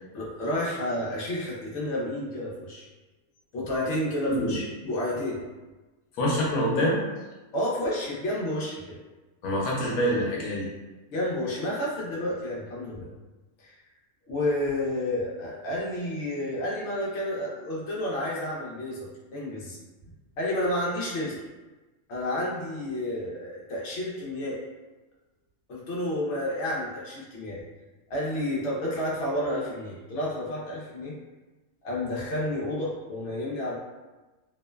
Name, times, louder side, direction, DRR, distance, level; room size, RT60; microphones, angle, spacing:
voice 1, 0.1-2.9 3.5-5.4 7.5-9.0 11.1-13.1 13.6-13.7 14.3-19.8 20.4-21.4 22.1-24.6 25.7-27.6 28.1-31.2 31.8-33.7, left 1 dB, 60° left, -5 dB, 0.9 m, -30 dB
voice 2, 4.2-4.6 6.2-7.0 9.4-10.7, equal, 80° left, -4 dB, 1.1 m, -25 dB
2.9 x 2.0 x 2.2 m, 1.2 s
omnidirectional pair, 1.6 m